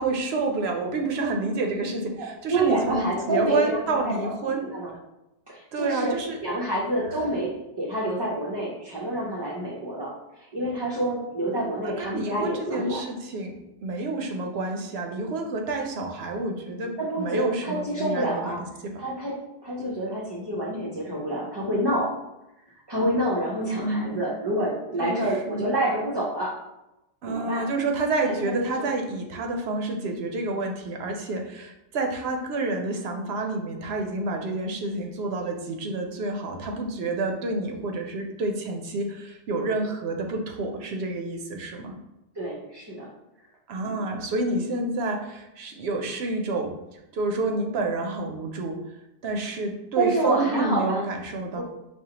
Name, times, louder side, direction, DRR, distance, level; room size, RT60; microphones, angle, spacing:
voice 1, 0.0-4.6 5.7-6.4 12.0-13.5 13.8-18.6 18.8-19.0 23.6-24.2 25.0-25.7 27.2-41.9 43.7-46.7 47.1-48.8 49.2-51.6, right 2 dB, 75° right, 3 dB, 0.8 m, -29 dB
voice 2, 2.2-4.9 5.5-10.1 10.5-13.1 17.0-18.6 19.0-22.1 22.9-26.6 27.3-27.7 28.3-28.9 42.4-43.1 43.8-44.1 50.0-51.0 51.5-51.6, right 1 dB, 30° right, -6 dB, 0.5 m, -28 dB
4.8 x 2.4 x 2.8 m, 0.91 s
omnidirectional pair, 1.1 m